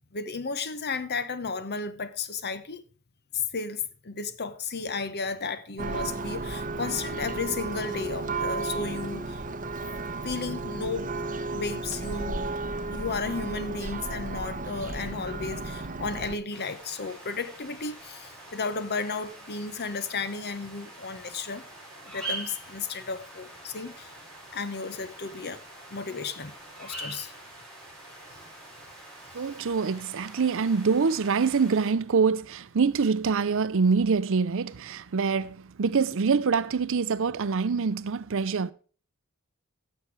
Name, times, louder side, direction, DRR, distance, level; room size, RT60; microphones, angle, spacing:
voice 1, 0.1-2.8 3.3-9.4 10.2-11.1 11.5-12.4 12.9-21.6 22.1-24.1 24.5-25.6 25.9-26.5 26.8-27.3, left 4 dB, 50° left, 1.0 m, -33 dB
Church bell, 5.8-16.4, right 3 dB, 40° right, 1.2 m, -33 dB
sound 1, 16.5-31.9, right 2 dB, 5° left, 4.8 m, -44 dB
voice 2, 29.3-38.7, right 5 dB, 65° right, 0.6 m, -25 dB
16.0 x 6.8 x 4.7 m
head